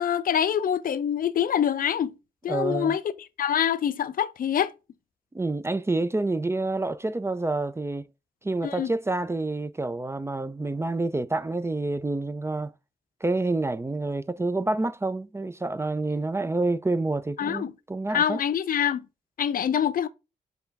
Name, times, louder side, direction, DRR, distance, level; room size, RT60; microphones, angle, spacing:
voice 1, 0.0-2.1 2.4-4.7 8.6-8.9 17.4-17.7 18.1-19.0 19.4-20.1, left 9 dB, 55° left, 0.5 m, -25 dB
voice 2, 2.5-3.0 5.3-8.0 8.4-12.7 13.2-18.4, right 2 dB, 15° right, 0.4 m, -28 dB
5.4 x 2.4 x 4.0 m
supercardioid pair, 45°, 18 cm